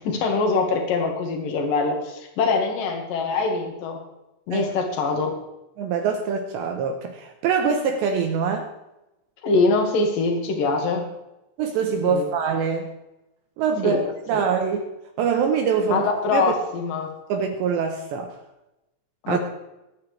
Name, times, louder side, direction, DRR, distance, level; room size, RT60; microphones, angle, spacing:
voice 1, 0.0-4.0 4.5-5.4 9.4-11.1 12.0-12.3 13.8-14.0 14.3-14.4 15.9-17.1 19.2-19.4, left 3 dB, 55° left, 3 dB, 2.7 m, -23 dB
voice 2, 5.8-8.7 11.6-12.9 13.6-14.9 15.2-16.5 17.3-18.4 19.3-19.4, right 6 dB, 75° right, 5 dB, 2.7 m, -24 dB
21.0 x 9.0 x 3.3 m, 0.94 s
omnidirectional pair, 5.9 m